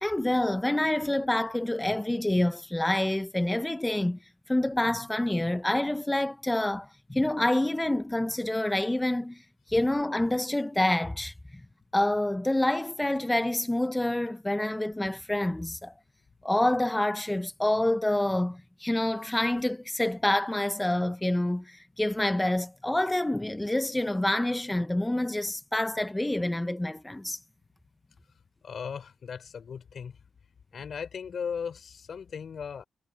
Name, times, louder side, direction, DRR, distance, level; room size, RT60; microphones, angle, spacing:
voice 1, 0.0-4.2 4.5-9.4 9.7-11.3 11.9-15.9 16.4-27.4, left 1 dB, 10° left, 0.8 m, -27 dB
voice 2, 28.6-30.2 30.7-32.8, left 6 dB, 60° left, 3.7 m, -37 dB
cardioid pair, 100°, 0 cm